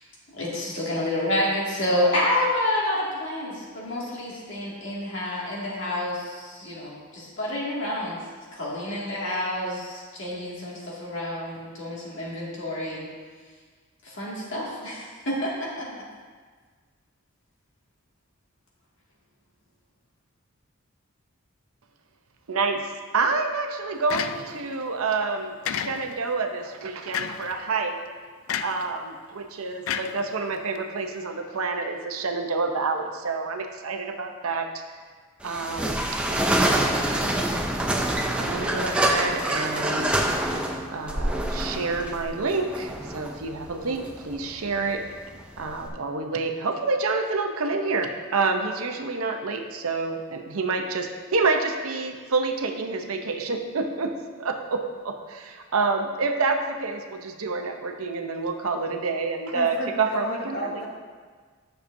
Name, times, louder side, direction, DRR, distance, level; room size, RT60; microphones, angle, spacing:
voice 1, 0.3-8.2 8.5-13.0 14.0-15.9, left 1 dB, 60° left, -6 dB, 2.2 m, -28 dB
voice 2, 22.5-22.8 23.1-27.9 28.6-34.7 35.4-36.0 36.3-37.4 38.4-40.6 40.9-45.0 45.6-54.1 54.4-60.8, right 4 dB, 85° right, 4 dB, 0.7 m, -28 dB
sound 1, 24.1-24.7 25.6-26.3 27.1-27.5 28.5-28.9 29.9-30.8, left 8 dB, 75° left, 0.3 m, -31 dB
sound 2, 35.4-45.9, right 1 dB, 5° right, 0.5 m, -26 dB
voice 3, 59.5-60.9, equal, 45° left, -3 dB, 1.6 m, -33 dB
11.0 x 6.7 x 2.7 m, 1.5 s
head